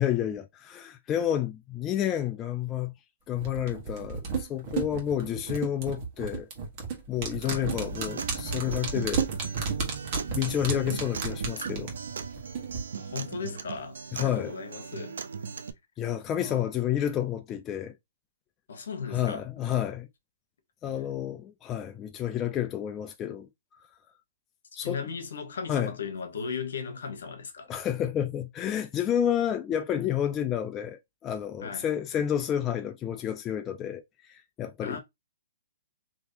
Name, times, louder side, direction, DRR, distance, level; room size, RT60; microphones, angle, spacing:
voice 1, 0.0-2.9 3.3-6.5 7.1-9.3 10.3-11.9 14.1-14.5 16.0-17.9 19.1-20.1 20.8-23.5 24.8-25.0 25.7-25.9 27.7-34.0 34.3-35.0, left 10 dB, 20° left, 0.3 m, -30 dB
sound 1, 3.4-12.8 13.1-13.2, right 5 dB, 40° right, 1.3 m, -33 dB
voice 2, 7.4-7.7 12.9-15.2 16.2-16.7 18.7-19.5 24.8-27.7 31.6-31.8 34.8-35.0, left 5 dB, 75° left, 1.1 m, -37 dB
Acoustic guitar, 7.7-15.7, right 6 dB, 80° right, 0.5 m, -38 dB
3.5 x 2.9 x 2.7 m
hypercardioid pair, 150°, 0 cm